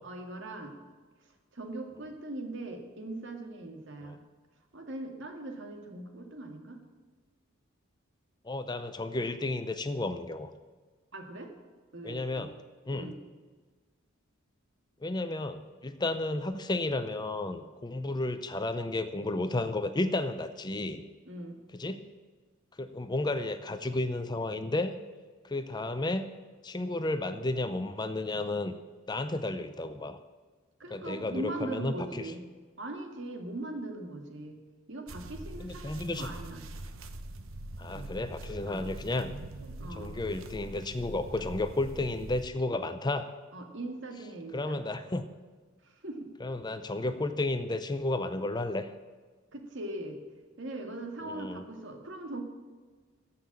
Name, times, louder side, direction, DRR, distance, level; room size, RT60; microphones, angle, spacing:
voice 1, 0.0-0.7 1.5-4.2 4.7-6.8 11.1-11.5 11.9-12.5 12.9-13.2 21.3-21.6 30.8-32.4 32.8-34.6 34.9-36.7 38.7-38.9 39.8-40.1 43.5-44.8 45.8-46.3 49.5-50.2 50.6-52.4, right 2 dB, 60° right, 4 dB, 1.9 m, -40 dB
voice 2, 8.4-10.5 12.0-12.6 12.9-13.1 15.0-21.0 21.7-22.0 22.8-25.0 25.4-26.2 26.6-28.7 29.1-30.2 30.9-32.3 35.6-36.3 37.8-39.3 39.9-43.3 44.5-45.3 46.4-48.9 51.2-51.6, left 2 dB, 20° left, 10 dB, 0.5 m, -32 dB
sound 1, 35.1-42.5, right 1 dB, 75° right, 1.0 m, -43 dB
14.5 x 5.8 x 8.5 m, 1.4 s
head